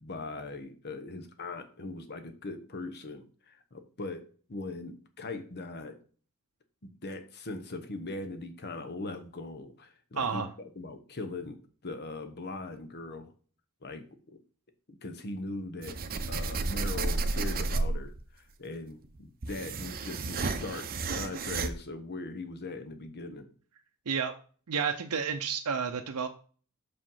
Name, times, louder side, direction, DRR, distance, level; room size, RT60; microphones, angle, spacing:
voice 1, 0.0-6.0 6.8-10.4 10.8-11.6 11.8-13.3 13.8-14.4 14.9-16.0 16.3-23.5, left 2 dB, 50° left, 8 dB, 1.1 m, -40 dB
voice 2, 10.2-10.5 24.1-24.3 24.7-26.3, right 6 dB, 80° right, 4 dB, 0.7 m, -30 dB
sound 1, 15.8-18.2 19.0-21.7, right 3 dB, 40° right, 0.7 m, -32 dB
6.5 x 5.1 x 5.6 m, 0.41 s
head